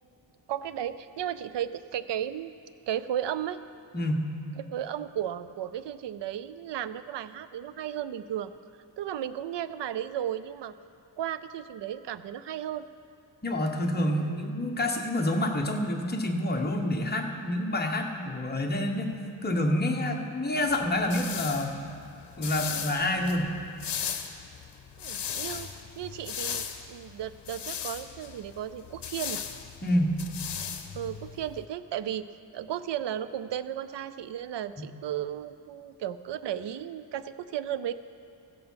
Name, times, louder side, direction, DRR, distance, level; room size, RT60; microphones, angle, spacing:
voice 1, 0.5-2.5 2.9-3.6 4.6-8.5 9.0-10.7 11.2-12.9 25.0-29.4 30.9-32.3 32.5-37.9, right 10 dB, 65° right, 13 dB, 0.5 m, -34 dB
voice 2, 3.9-4.2 13.4-19.1 19.4-21.7 22.4-23.5 29.8-30.2, left 1 dB, 20° left, 1 dB, 1.0 m, -28 dB
sound 1, 20.7-31.7, left 8 dB, 65° left, 0.8 m, -38 dB
15.0 x 6.9 x 5.6 m, 2.5 s
wide cardioid pair, 115°, 46 cm